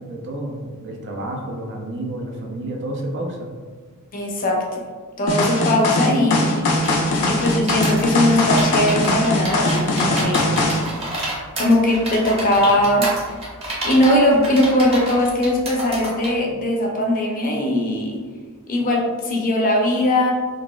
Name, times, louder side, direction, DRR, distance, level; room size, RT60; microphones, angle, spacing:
voice 1, 0.0-3.5 10.1-10.6 12.6-12.8, right 1 dB, 55° right, 1 dB, 0.5 m, -30 dB
voice 2, 4.1-4.8 5.2-6.8 7.2-10.5 11.6-13.1 13.7-18.2 18.7-20.3, left 1 dB, 40° left, 0 dB, 0.5 m, -20 dB
sound 1, 5.3-10.8, left 2 dB, 90° left, 0.5 m, -20 dB
sound 2, 6.8-16.4, right 1 dB, 25° right, 0.9 m, -29 dB
3.9 x 2.4 x 2.3 m, 1.5 s
head